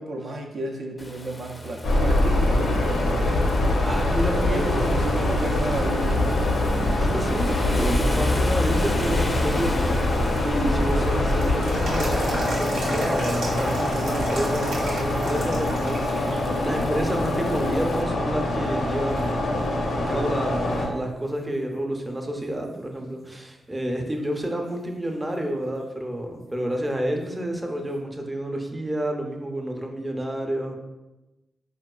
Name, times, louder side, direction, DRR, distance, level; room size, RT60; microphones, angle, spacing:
voice 1, 0.0-3.7 4.5-6.3, right 1 dB, 70° right, 0 dB, 0.4 m, -33 dB
Rain, 1.0-18.0, left 1 dB, 30° left, 0.4 m, -35 dB
sound 1, 1.8-20.9, left 1 dB, 85° left, 0.5 m, -24 dB
voice 2, 3.8-5.0 6.5-10.0 10.4-19.5 19.9-30.8, right 1 dB, 20° right, 2 dB, 0.5 m, -29 dB
sound 2, 10.5-16.3 16.7-16.8 17.6-18.1 18.6-18.7 19.2-20.4 20.7-20.8 24.2-24.3 27.2-27.3, right 1 dB, 85° right, 0.9 m, -33 dB
4.0 x 2.3 x 2.3 m, 1.0 s
supercardioid pair, 50°, 0 cm